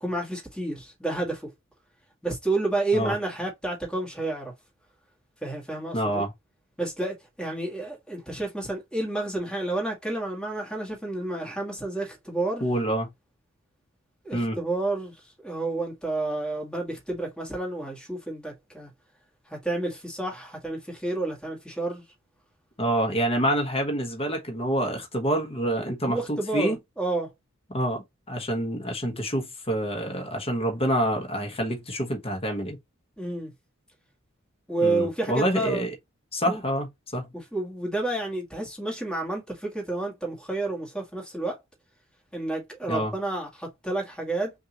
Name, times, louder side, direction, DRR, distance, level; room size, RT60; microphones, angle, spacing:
voice 1, 0.0-1.4 2.2-4.5 5.4-6.3 6.8-12.7 14.2-15.1 15.4-18.9 19.5-22.0 26.1-27.3 33.2-33.5 34.7-35.9 36.4-36.6 37.3-41.6 42.3-44.5, right 2 dB, 5° left, 2.1 m, -30 dB
voice 2, 5.9-6.3 12.6-13.1 14.3-14.6 22.8-26.8 27.7-32.8 34.8-35.9 36.3-37.3 42.9-43.1, right 1 dB, 30° left, 1.3 m, -27 dB
5.4 x 2.7 x 3.0 m
head